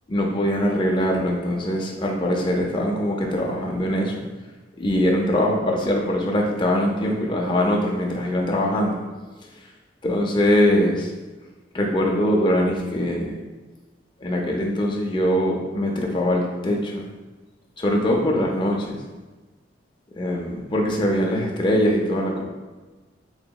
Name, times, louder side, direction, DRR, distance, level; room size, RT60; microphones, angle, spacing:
voice 1, 0.1-4.2 4.8-9.0 10.0-11.1 11.7-13.4 14.2-17.1 17.8-19.0 20.2-22.4, equal, 25° left, -1 dB, 0.4 m, -22 dB
4.1 x 2.8 x 2.3 m, 1.2 s
head